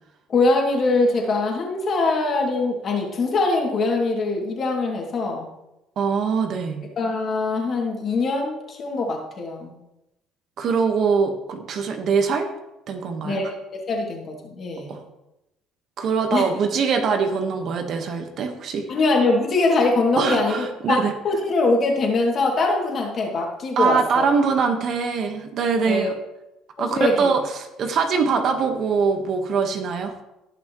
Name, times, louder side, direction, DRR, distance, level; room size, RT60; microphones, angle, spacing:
voice 1, 0.3-5.5 7.0-9.8 13.2-15.0 16.3-16.5 18.9-21.0 21.2-24.3 25.9-26.1 26.8-27.3, left 3 dB, 45° left, 0 dB, 2.6 m, -22 dB
voice 2, 6.0-6.8 10.6-12.5 12.9-13.4 14.9-15.0 16.0-18.8 20.1-21.1 23.8-26.1 26.8-30.1, right 5 dB, 55° right, 5 dB, 1.4 m, -23 dB
17.5 x 6.0 x 3.2 m, 0.92 s
cardioid pair, 105°, 0 cm